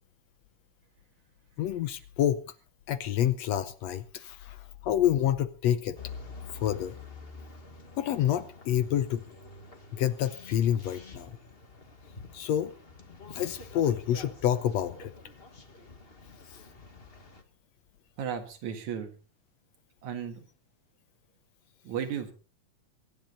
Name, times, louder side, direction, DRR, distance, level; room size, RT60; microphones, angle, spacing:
voice 1, 1.6-2.4 2.9-6.0 6.5-7.0 8.0-9.3 9.9-11.3 12.3-12.7 13.3-15.1 16.5-16.6, left 11 dB, 70° left, 13 dB, 1.8 m, -28 dB
sound 1, 6.0-17.4, left 4 dB, 25° left, 1.4 m, -48 dB
voice 2, 18.2-19.1 20.0-20.4 21.8-22.3, right 8 dB, 70° right, 6 dB, 3.1 m, -34 dB
24.5 x 10.5 x 4.0 m, 0.36 s
omnidirectional pair, 3.4 m